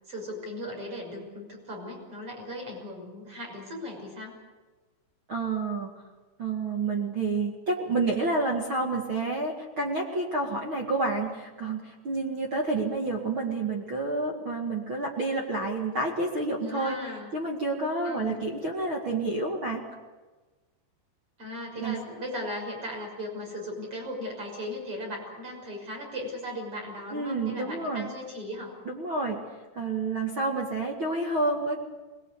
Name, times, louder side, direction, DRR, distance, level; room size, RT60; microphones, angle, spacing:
voice 1, 0.1-4.3 16.6-17.3 18.0-18.4 21.4-28.7, left 1 dB, 25° right, 0 dB, 6.7 m, -37 dB
voice 2, 5.3-5.9 6.4-17.0 17.3-19.8 21.8-22.0 27.1-28.1 28.8-29.4 29.7-31.7, right 3 dB, 50° right, -1 dB, 1.5 m, -29 dB
22.5 x 20.5 x 8.4 m, 1.3 s
omnidirectional pair, 5.7 m